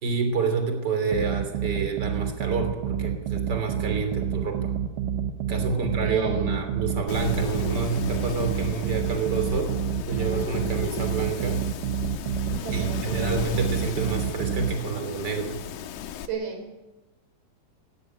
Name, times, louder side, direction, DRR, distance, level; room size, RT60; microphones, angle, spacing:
voice 1, 0.0-4.7 5.5-9.8 10.1-11.7 12.7-15.6, right 5 dB, 30° right, 5 dB, 3.4 m, -28 dB
sound 1, 1.1-14.7, right 8 dB, 75° right, 2.6 m, -29 dB
voice 2, 5.7-6.6 12.5-13.6 16.3-16.7, right 3 dB, 55° right, 5 dB, 4.7 m, -35 dB
Wind, 7.1-16.3, left 9 dB, 70° left, 2.2 m, -35 dB
16.5 x 16.5 x 9.6 m, 1.1 s
omnidirectional pair, 4.1 m